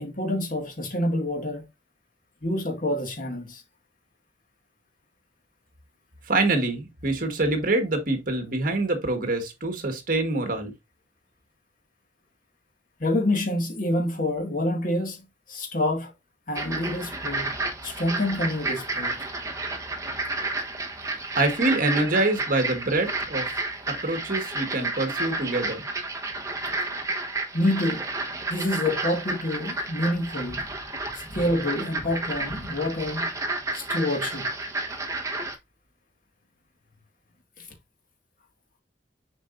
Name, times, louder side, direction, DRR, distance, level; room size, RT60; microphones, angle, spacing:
voice 1, 0.0-1.6 2.4-3.6 13.0-15.2 15.5-16.1 16.5-17.5 17.8-19.2 27.5-28.1 28.5-30.7 31.1-33.3 33.7-34.5 37.6-37.7, left 1 dB, 50° left, 2.0 m, -27 dB
voice 2, 6.3-10.7 21.3-23.5 23.9-25.8, right 2 dB, 50° right, 1.5 m, -25 dB
sound 1, 16.5-35.6, right 2 dB, 20° right, 1.1 m, -31 dB
7.2 x 5.0 x 2.6 m
head